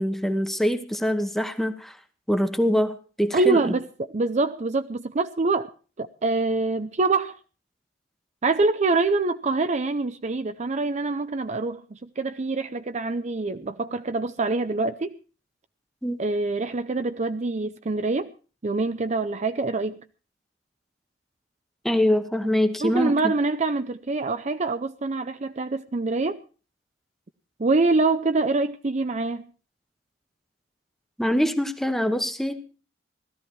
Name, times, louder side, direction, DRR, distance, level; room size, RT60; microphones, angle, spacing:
voice 1, 0.0-2.0 2.3-3.7 16.0-16.2 21.8-23.3 31.2-32.6, equal, ahead, 1.2 m, -24 dB
voice 2, 3.3-3.8 4.1-5.7 6.0-7.4 8.4-15.2 16.2-18.3 18.6-20.0 22.8-26.4 27.6-29.5, right 3 dB, 40° right, 0.6 m, -25 dB
17.5 x 13.5 x 4.6 m
head